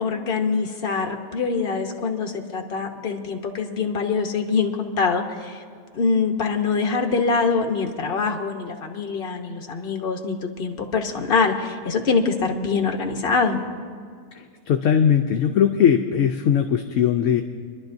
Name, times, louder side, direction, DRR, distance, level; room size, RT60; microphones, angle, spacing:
voice 1, 0.0-5.6 5.9-13.6, left 4 dB, 45° left, 4 dB, 1.1 m, -24 dB
voice 2, 14.7-17.4, left 8 dB, 65° left, 5 dB, 0.9 m, -19 dB
27.5 x 11.5 x 2.6 m, 2.1 s
omnidirectional pair, 1.5 m